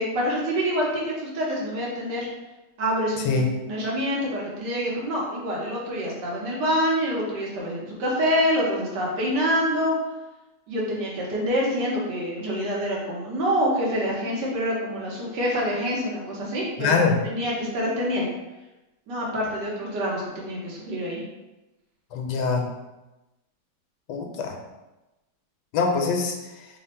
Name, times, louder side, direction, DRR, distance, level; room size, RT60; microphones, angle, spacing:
voice 1, 0.0-2.3 2.8-10.0 10.7-17.0 17.3-18.3 19.1-21.2, equal, 80° right, -4 dB, 1.5 m, -26 dB
voice 2, 16.8-17.2 22.1-22.7 24.1-24.6 25.7-26.7, left 4 dB, 80° left, 2 dB, 1.2 m, -23 dB
3.5 x 2.1 x 4.2 m, 1.0 s
omnidirectional pair, 1.9 m